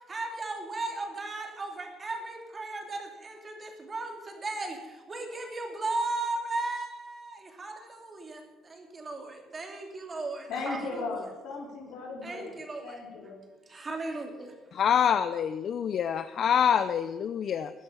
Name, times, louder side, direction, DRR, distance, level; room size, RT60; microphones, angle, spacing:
voice 1, 0.1-11.1 12.2-13.3 13.7-14.5, right 2 dB, 25° right, 2.6 m, -36 dB
voice 2, 10.5-12.5 12.8-13.4, left 3 dB, 70° left, 3.7 m, -36 dB
voice 3, 14.7-17.7, left 8 dB, 50° left, 0.5 m, -26 dB
14.5 x 10.5 x 5.7 m
cardioid pair, 115°, 0 cm